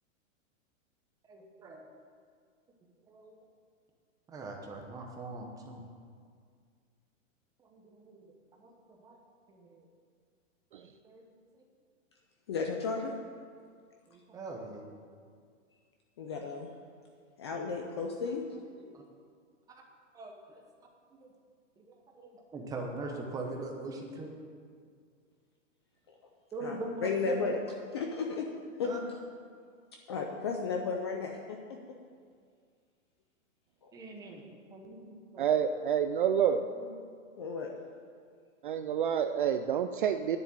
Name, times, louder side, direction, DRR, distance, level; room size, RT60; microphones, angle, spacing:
voice 1, 1.2-1.9 3.1-3.4 4.3-5.8 7.6-8.3 8.6-9.2 9.5-9.9 10.8-11.3 11.5-11.6 14.1-14.8 18.8-19.0 20.1-20.6 21.1-21.3 21.8-24.3 26.5-27.5 28.8-29.0 33.9-35.8 36.7-36.9, right 2 dB, 10° right, 1 dB, 0.9 m, -43 dB
voice 2, 12.5-13.1 16.2-16.7 17.4-18.4 26.1-26.2 26.6-27.6 27.9-28.5 28.7-28.9 30.1-31.8 33.8-33.9 37.4-37.7, left 4 dB, 20° left, 2 dB, 0.4 m, -34 dB
voice 3, 35.4-36.7 38.6-40.4, right 8 dB, 45° right, 8 dB, 0.4 m, -28 dB
10.0 x 7.4 x 8.8 m, 2.1 s
supercardioid pair, 165°, 38 cm